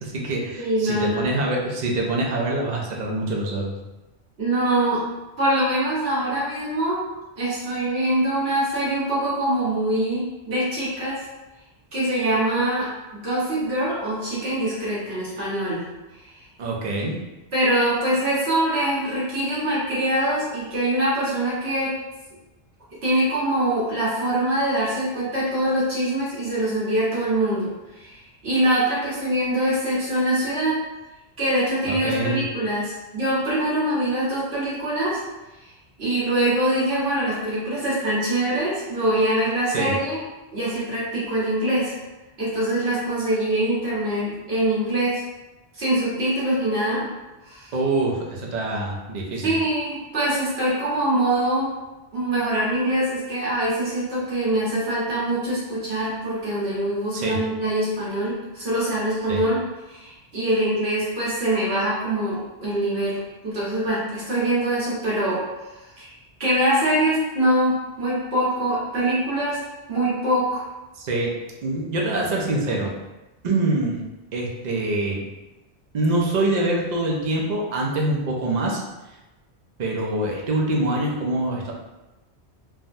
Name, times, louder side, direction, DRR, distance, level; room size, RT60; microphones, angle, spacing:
voice 1, 0.0-3.8 16.6-17.1 31.9-32.4 39.7-39.9 47.7-49.5 57.1-57.4 59.3-59.4 70.9-71.3 71.6-72.9 73.4-74.0 74.3-75.2 75.9-78.8 79.8-81.7, right 2 dB, 50° right, -1 dB, 0.6 m, -25 dB
voice 2, 0.6-1.2 4.4-5.0 5.4-7.0 7.4-11.2 11.9-15.8 16.3-16.4 17.5-22.0 23.0-30.8 31.4-35.2 36.0-40.2 40.5-41.9 42.4-45.2 45.7-47.1 47.4-47.7 49.4-51.7 52.1-59.6 59.9-63.2 63.4-65.4 66.0-66.1 66.4-69.6 69.9-70.6, right 1 dB, 70° right, -9 dB, 1.5 m, -23 dB
3.4 x 2.1 x 2.6 m, 1.1 s
omnidirectional pair, 1.1 m